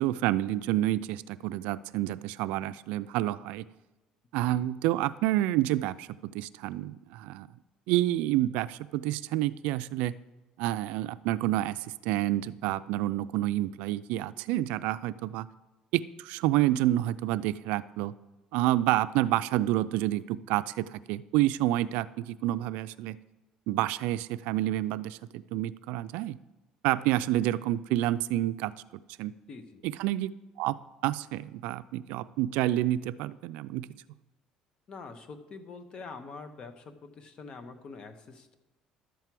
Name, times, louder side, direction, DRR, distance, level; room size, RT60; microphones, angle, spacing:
voice 1, 0.0-3.6 4.3-7.5 7.9-10.1 10.6-15.5 15.9-18.1 18.5-23.2 23.7-26.4 26.8-29.3 29.8-30.3 30.6-33.9, right 15 dB, 85° right, 14 dB, 0.3 m, -29 dB
voice 2, 29.5-29.8 34.9-38.6, left 4 dB, 40° left, 8 dB, 1.0 m, -45 dB
11.5 x 4.6 x 7.5 m, 1.1 s
cardioid pair, 140°, 2 cm